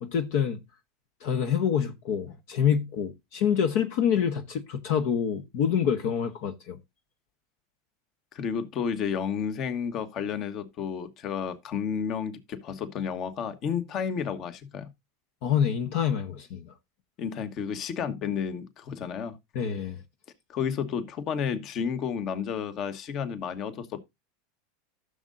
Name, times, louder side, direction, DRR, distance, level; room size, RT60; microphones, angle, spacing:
voice 1, 0.0-0.6 1.2-6.8 15.4-16.7 19.5-20.0, left 8 dB, 65° left, 1.1 m, -26 dB
voice 2, 8.3-14.9 17.2-19.4 20.5-24.0, left 7 dB, 45° left, 1.3 m, -31 dB
14.5 x 6.5 x 2.6 m
hypercardioid pair, 105°, 0 cm